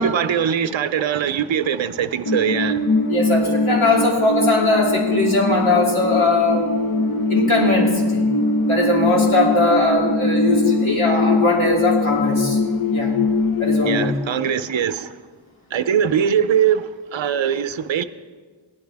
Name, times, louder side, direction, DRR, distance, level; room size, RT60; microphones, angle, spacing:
voice 1, 0.0-2.9 13.9-15.2 15.7-18.0, right 8 dB, 70° right, 0.6 m, -21 dB
sound 1, 2.3-14.1, left 3 dB, 45° left, 0.8 m, -21 dB
voice 2, 3.1-6.6 7.3-8.3 8.7-12.6 12.9-13.1 13.6-14.1, left 2 dB, 80° left, 2.8 m, -20 dB
16.5 x 11.5 x 3.4 m
wide cardioid pair, 40°, 47 cm